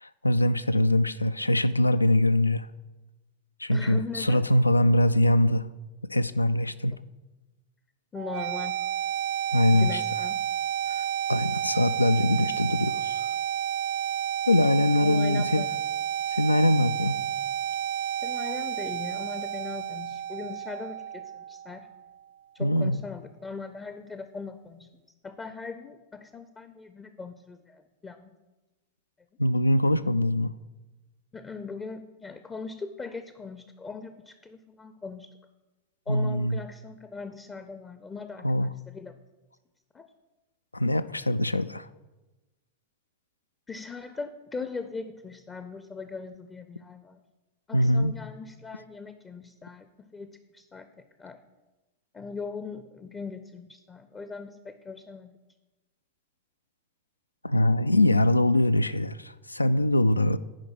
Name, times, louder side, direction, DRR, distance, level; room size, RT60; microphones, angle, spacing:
voice 1, 0.0-2.7 3.6-5.7 6.0-7.0 9.5-10.0 10.9-13.3 14.5-15.7 16.3-17.2 22.6-23.0 29.4-30.5 36.1-36.6 38.4-38.7 40.7-41.9 47.7-48.2 57.4-60.4, left 1 dB, 85° left, 14 dB, 0.3 m, -23 dB
voice 2, 3.7-4.5 6.9-7.0 8.1-8.8 9.7-10.4 15.0-15.7 18.2-21.9 22.5-24.9 25.2-28.3 31.3-35.3 36.1-39.2 39.9-40.1 43.7-47.2 47.7-50.9 51.2-51.4 52.1-55.3, left 4 dB, 20° left, 9 dB, 0.5 m, -40 dB
sound 1, 8.1-22.1, right 10 dB, 50° right, 0.3 m, -31 dB
10.5 x 5.1 x 6.1 m, 1.1 s
figure-of-eight pair, 90°, 0 cm